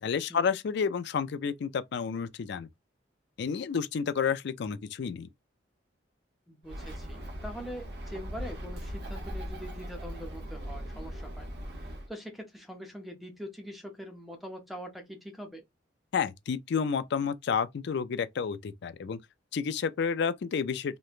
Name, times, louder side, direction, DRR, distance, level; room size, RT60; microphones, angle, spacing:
voice 1, 0.0-2.7 3.4-5.3 16.1-19.2 19.5-21.0, left 6 dB, 60° left, 0.4 m, -30 dB
voice 2, 6.5-11.5 11.8-15.6, equal, ahead, 0.5 m, -43 dB
Bird, 6.6-12.1, equal, 60° right, 0.9 m, -39 dB
3.0 x 2.1 x 2.4 m
head